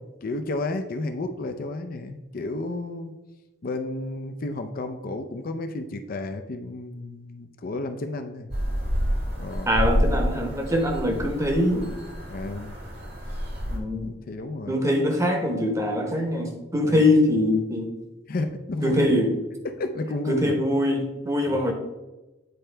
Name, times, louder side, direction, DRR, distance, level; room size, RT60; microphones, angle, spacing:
voice 1, 0.2-3.2 3.6-8.5 9.4-9.7 12.3-12.7 14.0-14.8 16.9-17.0 18.3-19.2 19.6-20.5 21.5-21.6, left 2 dB, 50° left, 7 dB, 0.5 m, -32 dB
sound 1, 8.5-13.8, equal, 55° right, 1.5 m, -28 dB
voice 2, 9.7-11.9 13.7-14.1 14.7-17.9 18.8-19.3 20.3-21.7, left 1 dB, 15° right, 3 dB, 0.9 m, -23 dB
9.3 x 4.4 x 3.3 m, 1.1 s
head